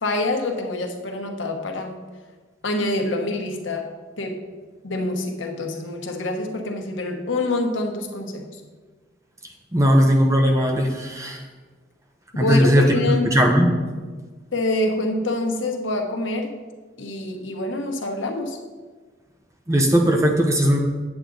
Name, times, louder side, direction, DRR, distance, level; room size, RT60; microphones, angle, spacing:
voice 1, 0.0-2.0 2.6-3.8 4.2-4.4 4.8-8.5 12.3-13.3 14.5-16.5 17.0-18.6, left 2 dB, 90° left, 3 dB, 1.1 m, -26 dB
voice 2, 9.7-11.4 12.3-13.7 19.7-20.8, equal, 15° right, 2 dB, 0.9 m, -18 dB
8.4 x 7.7 x 3.9 m, 1.4 s
head